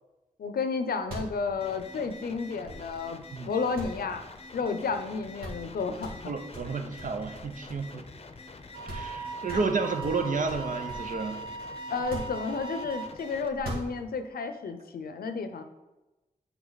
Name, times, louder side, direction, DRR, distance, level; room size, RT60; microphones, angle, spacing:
voice 1, 0.4-3.2 3.5-4.2 4.5-6.3 9.5-9.6 11.9-15.6, left 4 dB, 85° left, 9 dB, 0.6 m, -32 dB
sound 1, 1.0-3.2 3.7-4.8 5.1-5.2 5.4-5.7 6.0-8.2 8.5-8.6 8.9-9.2 9.5-11.2 11.9-12.9 13.5-14.3, equal, 80° right, 2.2 m, -41 dB
sound 2, 1.6-13.5, left 3 dB, 40° left, 0.7 m, -47 dB
voice 2, 6.3-8.0 8.9-11.4, right 4 dB, 60° right, 6 dB, 0.8 m, -31 dB
Wind instrument woodwind instrument, 8.7-13.2, right 4 dB, 35° right, 1.0 m, -39 dB
8.0 x 4.7 x 4.0 m, 1.0 s
cardioid pair, 65°, 15 cm